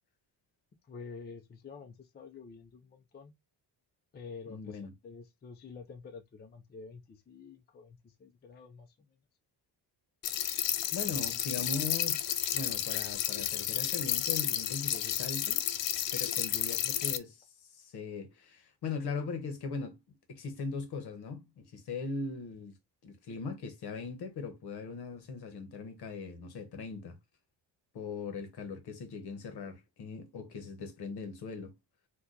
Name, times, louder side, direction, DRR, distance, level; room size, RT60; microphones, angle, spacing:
voice 1, 0.9-3.3 4.1-9.1, left 5 dB, 25° left, 0.5 m, -48 dB
voice 2, 4.5-4.9 10.9-15.6 16.1-22.8 23.0-27.2 27.9-31.7, left 4 dB, 65° left, 1.0 m, -40 dB
sound 1, 10.2-17.2, left 12 dB, 90° left, 0.6 m, -32 dB
2.9 x 2.3 x 3.7 m
cardioid pair, 145°, 42 cm